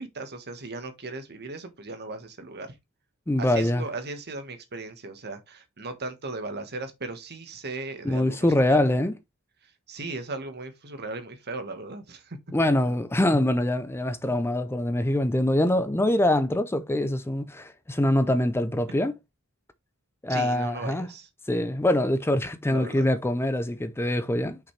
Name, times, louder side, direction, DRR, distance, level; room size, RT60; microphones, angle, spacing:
voice 1, 0.0-2.7 3.4-8.8 9.6-12.4 20.3-21.3 22.7-23.1, right 3 dB, 50° right, 1.5 m, -37 dB
voice 2, 3.3-3.8 8.0-9.2 12.5-19.1 20.2-21.1 21.5-24.6, left 1 dB, 10° left, 0.5 m, -24 dB
6.0 x 5.3 x 3.2 m
head